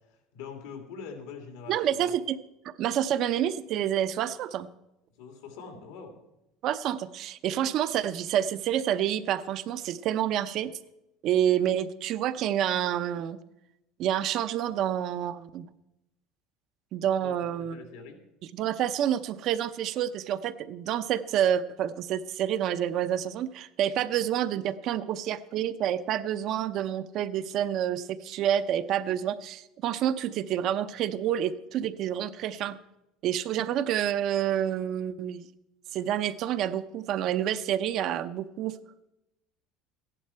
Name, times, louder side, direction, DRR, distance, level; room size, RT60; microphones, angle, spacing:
voice 1, 0.1-2.1 5.2-6.2 17.2-18.2, left 5 dB, 90° left, 4 dB, 2.7 m, -44 dB
voice 2, 1.7-2.4 2.6-4.7 6.6-10.7 11.2-13.4 14.0-15.7 16.9-17.8 18.5-32.8 33.2-35.5 35.9-38.8, right 10 dB, 50° right, 12 dB, 0.6 m, -28 dB
14.5 x 11.0 x 4.4 m, 0.91 s
cardioid pair, 130°, 0 cm